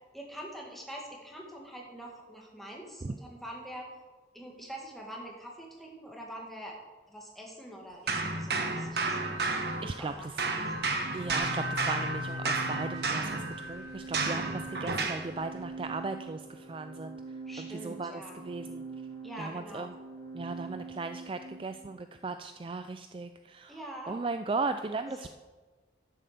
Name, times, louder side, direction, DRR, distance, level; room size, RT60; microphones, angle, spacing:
voice 1, 0.1-3.9 4.3-6.8 7.1-10.6 17.5-18.4 19.2-19.9 23.7-24.2 25.1-25.3, right 1 dB, ahead, -2 dB, 2.1 m, -45 dB
sound 1, 8.1-10.1 10.4-15.3, right 3 dB, 60° right, 1.2 m, -32 dB
voice 2, 9.8-10.4 11.1-17.2 17.6-18.8 19.4-20.0 20.3-23.8 24.1-25.3, right 3 dB, 30° right, 9 dB, 0.3 m, -37 dB
Organ, 11.0-21.8, right 1 dB, 80° right, 2.8 m, -43 dB
11.0 x 7.4 x 6.9 m, 1.3 s
head